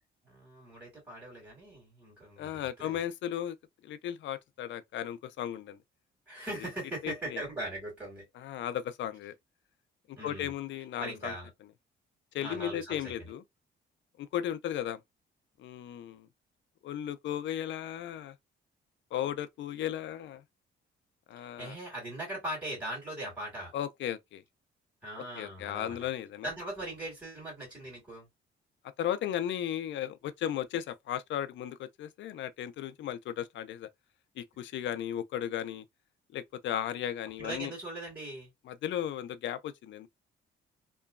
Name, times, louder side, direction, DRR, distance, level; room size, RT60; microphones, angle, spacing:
voice 1, 0.3-2.5 2.8-3.0 6.3-8.3 10.2-10.5 11.0-11.5 12.4-13.3 21.4-23.7 25.0-26.1 26.4-28.3 37.4-38.5, right 1 dB, 10° right, 1.9 m, -40 dB
voice 2, 2.4-3.6 3.8-5.8 6.6-6.7 7.0-7.4 8.4-9.3 10.1-11.3 12.3-13.4 14.2-15.0 15.6-16.3 16.8-18.4 19.1-20.4 21.3-21.8 23.7-24.4 25.4-26.5 29.0-33.9 34.4-35.8 36.3-37.7 38.6-40.1, left 10 dB, 70° left, 0.4 m, -35 dB
2.9 x 2.2 x 2.3 m
cardioid pair, 90°, 20 cm